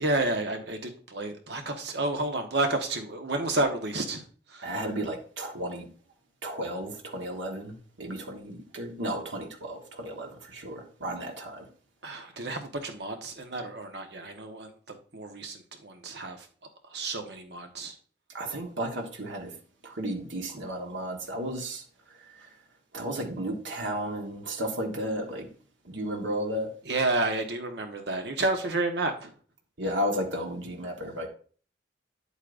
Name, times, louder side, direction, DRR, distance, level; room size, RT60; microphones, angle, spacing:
voice 1, 0.0-4.2 4.5-4.7 12.0-16.5 16.9-17.9 26.9-29.3, right 2 dB, 60° right, 1.3 m, -30 dB
voice 2, 4.6-5.9 6.4-11.7 18.3-19.6 19.8-21.8 22.1-22.5 22.9-25.5 25.8-26.7 29.8-31.3, equal, 80° right, 1.5 m, -33 dB
9.4 x 8.4 x 2.6 m
head